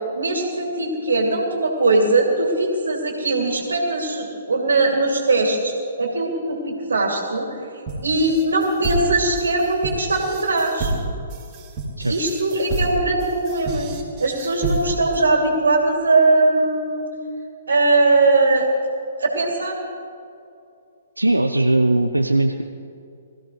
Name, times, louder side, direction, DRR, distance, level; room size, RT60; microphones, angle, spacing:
voice 1, 0.1-7.5 8.0-10.9 12.1-13.9 14.2-17.1 17.7-18.7 19.2-19.8, right 2 dB, 65° right, 0 dB, 2.7 m, -20 dB
sound 1, 7.9-15.2, right 2 dB, 25° right, 3.2 m, -28 dB
voice 2, 21.2-22.6, right 2 dB, 80° right, 5 dB, 0.7 m, -19 dB
21.5 x 15.0 x 3.3 m, 2.4 s
figure-of-eight pair, 120°, 0 cm